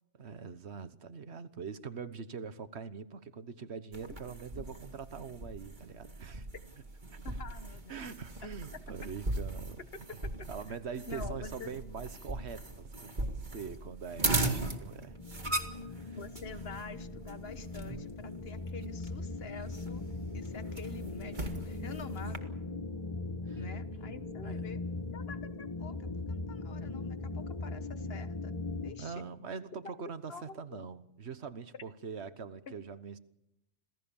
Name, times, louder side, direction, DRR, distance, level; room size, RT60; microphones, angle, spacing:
voice 1, 0.2-6.5 7.1-7.2 7.9-9.8 10.5-13.2 13.5-16.2 23.5-23.6 24.4-24.7 29.0-33.2, right 6 dB, 65° right, 13 dB, 1.4 m, -43 dB
sound 1, 3.9-22.4, right 2 dB, 40° right, 2.3 m, -39 dB
voice 2, 7.2-8.2 10.2-10.8 11.1-11.7 16.2-20.0 20.3-22.5 23.6-24.8 25.1-26.0 26.3-28.6 28.8-29.3 30.3-30.9 32.7-32.8, left 4 dB, 55° left, 11 dB, 1.5 m, -47 dB
sound 2, 15.1-28.9, left 3 dB, 25° left, 1.2 m, -40 dB
27.0 x 17.0 x 7.2 m, 0.84 s
omnidirectional pair, 1.2 m